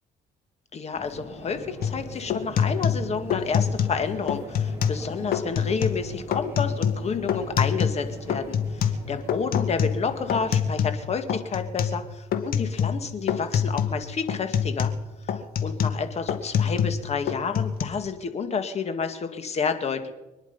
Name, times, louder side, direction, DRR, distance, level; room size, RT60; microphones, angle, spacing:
voice 1, 0.7-8.8 9.1-14.9 15.3-20.1, left 5 dB, 40° left, 8 dB, 2.0 m, -30 dB
sound 1, 0.9-10.7, equal, 15° right, 7.0 m, -43 dB
sound 2, 1.8-2.0 2.3-4.0 4.3-5.0 5.3-6.0 6.3-8.0 8.3-11.0 11.3-12.0 12.3-13.0 13.3-14.0 14.3-17.0 17.3-17.8, left 7 dB, 60° left, 1.8 m, -25 dB
25.0 x 10.5 x 5.5 m, 1.1 s
cardioid pair, 110°, 17 cm